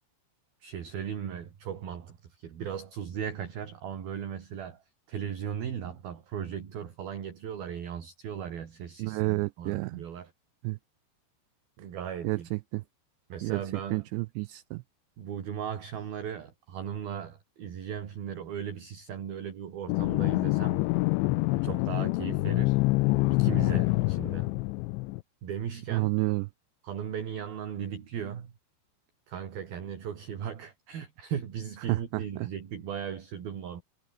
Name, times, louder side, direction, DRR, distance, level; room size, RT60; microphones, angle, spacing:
voice 1, 0.6-4.8 5.1-10.3 11.8-12.5 13.3-14.1 15.2-20.8 21.5-22.8 23.3-24.5 25.4-26.1 26.8-28.5 29.3-33.8, right 8 dB, 55° right, 4.4 m, -37 dB
voice 2, 9.0-10.0 10.6-10.8 12.2-12.8 13.4-13.6 13.9-14.8 25.9-26.5 31.9-32.5, right 23 dB, 85° right, 2.6 m, -30 dB
sound 1, 19.9-25.2, left 23 dB, 85° left, 2.8 m, -26 dB
omnidirectional pair, 5.5 m